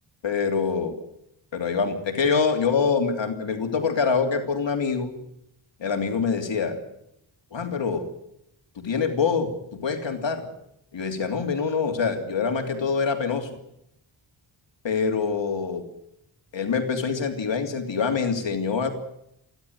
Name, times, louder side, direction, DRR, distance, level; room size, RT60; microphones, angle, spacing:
voice 1, 0.2-0.9 1.5-5.2 5.8-6.8 7.5-8.1 8.7-10.5 10.9-13.5 14.8-15.9 16.5-18.9, left 5 dB, 65° left, 5 dB, 3.1 m, -25 dB
28.5 x 12.0 x 9.5 m, 0.81 s
wide cardioid pair, 90°, 48 cm